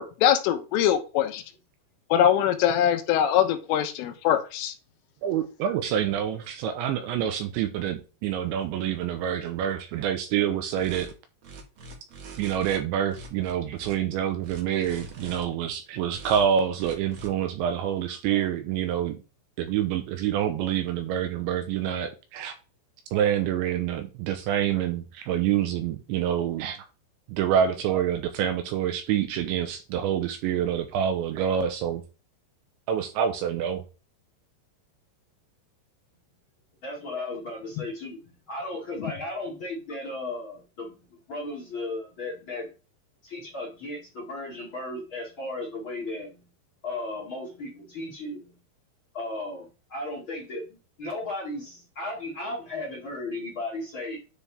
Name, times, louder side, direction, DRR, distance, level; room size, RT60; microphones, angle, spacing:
voice 1, 0.0-1.4 2.1-4.8 39.0-39.1, left 10 dB, 80° left, 3.5 m, -23 dB
voice 2, 5.2-11.1 12.4-19.2 19.6-22.5 23.1-26.9 27.3-32.0 32.9-33.8, right 9 dB, 80° right, 2.7 m, -27 dB
sound 1, 10.8-11.1 11.4-12.8 13.1-14.0 14.4-15.4 16.1-16.4 16.8-17.3, right 3 dB, 65° right, 1.7 m, -43 dB
voice 3, 36.8-38.2 38.5-42.7 43.2-46.4 46.8-48.5 49.1-54.2, left 2 dB, 45° left, 1.7 m, -35 dB
9.9 x 4.6 x 3.5 m
omnidirectional pair, 5.8 m